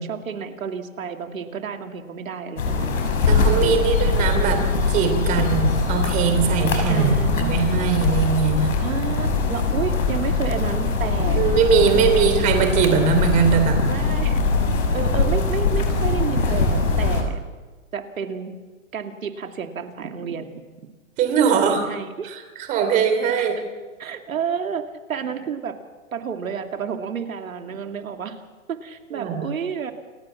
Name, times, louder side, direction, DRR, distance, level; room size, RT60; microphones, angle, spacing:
voice 1, 0.0-3.0 3.6-3.9 6.9-7.5 8.8-11.4 11.9-12.2 13.9-14.4 14.9-17.4 17.9-18.6 18.9-20.5 21.5-22.4 23.4-23.5 24.0-25.8 26.1-28.4 28.7-29.9, right 6 dB, 85° right, 5 dB, 2.6 m, -30 dB
sound 1, 2.6-17.2, left 3 dB, 80° left, 5.9 m, -22 dB
voice 2, 3.3-8.7 11.3-13.8 21.2-21.8 22.3-22.4 22.7-23.6 29.1-29.4, right 6 dB, 20° right, 6 dB, 3.1 m, -21 dB
28.5 x 14.5 x 7.4 m, 1.3 s
hypercardioid pair, 160°, 40 cm